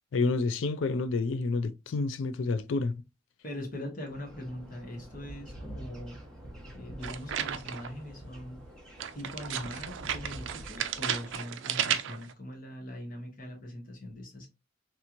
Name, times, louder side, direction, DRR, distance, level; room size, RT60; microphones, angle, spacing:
voice 1, 0.1-3.0, left 3 dB, 75° left, 0.4 m, -29 dB
voice 2, 3.4-6.2 6.7-8.6 9.1-14.5, left 1 dB, 45° left, 1.3 m, -41 dB
sound 1, 4.1-11.4, right 1 dB, 5° left, 0.9 m, -47 dB
sound 2, 7.0-8.0 9.0-12.3, right 9 dB, 70° right, 0.4 m, -33 dB
3.3 x 2.9 x 2.5 m
head